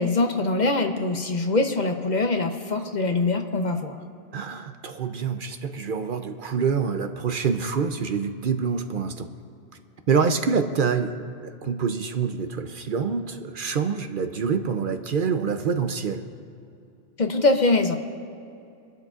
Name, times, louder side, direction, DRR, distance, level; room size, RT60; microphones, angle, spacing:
voice 1, 0.0-4.0 17.2-18.0, left 2 dB, 45° left, 5 dB, 0.9 m, -23 dB
voice 2, 4.3-9.3 10.1-11.1 11.4-16.2, right 6 dB, 60° right, 7 dB, 0.8 m, -26 dB
26.0 x 12.0 x 2.4 m, 2.6 s
omnidirectional pair, 1.1 m